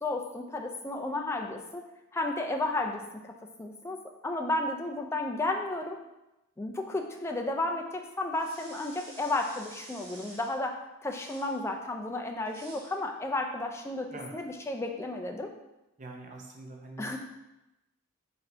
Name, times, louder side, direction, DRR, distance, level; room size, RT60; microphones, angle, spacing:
voice 1, 0.0-1.8 2.1-3.3 3.6-4.0 4.2-6.0 6.6-10.7 11.0-14.1 14.3-15.5 17.0-17.2, left 2 dB, 10° left, 2 dB, 0.3 m, -32 dB
sound 1, 8.3-10.6 11.1-11.6 12.4-12.9, right 2 dB, 85° right, 1.3 m, -50 dB
voice 2, 16.0-17.2, right 2 dB, 35° right, 1 dB, 0.6 m, -44 dB
4.2 x 2.7 x 4.4 m, 0.94 s
head